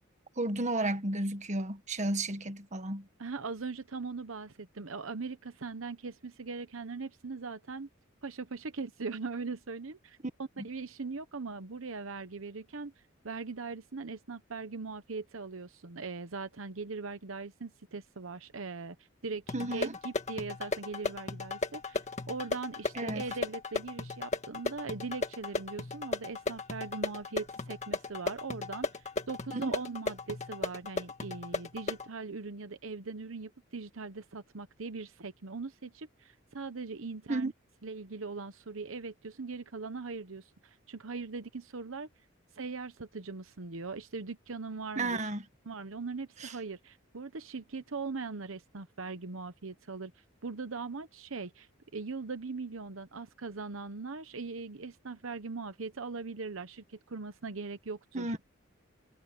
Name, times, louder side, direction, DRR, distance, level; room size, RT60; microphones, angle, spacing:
voice 1, 0.4-3.1 10.6-10.7 19.5-20.0 22.9-23.2 29.5-29.7 37.3-37.5 44.9-45.4 46.4-46.5 58.1-58.4, right 2 dB, 35° right, 1.7 m, -32 dB
voice 2, 3.2-7.9 8.2-12.9 13.2-19.0 19.2-37.5 37.8-42.1 42.5-45.3 45.7-50.1 50.4-58.4, right 4 dB, 75° right, 1.0 m, -40 dB
sound 1, 19.5-32.1, left 3 dB, 35° left, 1.7 m, -36 dB
head